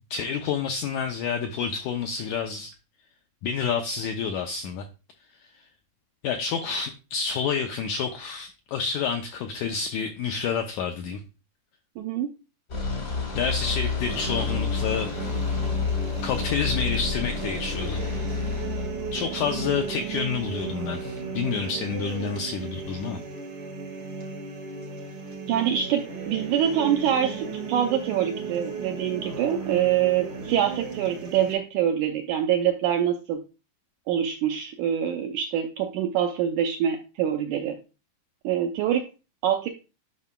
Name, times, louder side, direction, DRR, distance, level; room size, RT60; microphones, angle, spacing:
voice 1, 0.1-2.7 3.4-4.8 6.2-11.2 13.3-15.1 16.2-18.0 19.1-23.2, left 6 dB, 85° left, 5 dB, 1.7 m, -29 dB
voice 2, 12.0-12.3 25.5-33.4 34.1-37.8 38.4-39.0 39.4-39.7, right 10 dB, 85° right, 5 dB, 1.7 m, -25 dB
sound 1, 12.7-20.7, left 5 dB, 55° left, 0.9 m, -30 dB
sound 2, 14.1-31.5, right 5 dB, 65° right, 1.1 m, -35 dB
11.0 x 5.6 x 2.2 m, 0.31 s
omnidirectional pair, 4.1 m